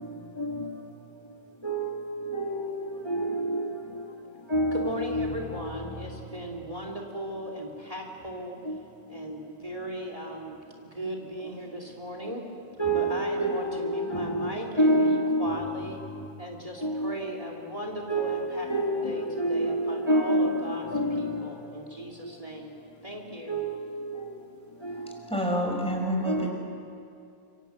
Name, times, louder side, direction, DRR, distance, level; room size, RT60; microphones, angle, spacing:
voice 1, 0.4-0.7 1.6-3.7 4.5-5.4 8.7-8.8 12.8-15.7 16.8-17.2 18.1-21.5 23.5-23.9 24.2-24.3 24.8-25.1 26.3-26.5, right 1 dB, 25° left, 1.9 m, -27 dB
voice 2, 4.7-8.5 9.1-12.5 12.9-16.0 16.4-20.9 21.2-22.7 23.0-23.6, equal, 35° right, 2.6 m, -37 dB
voice 3, 25.2-26.5, equal, 5° left, 5.3 m, -28 dB
27.5 x 24.5 x 8.1 m
omnidirectional pair, 1.1 m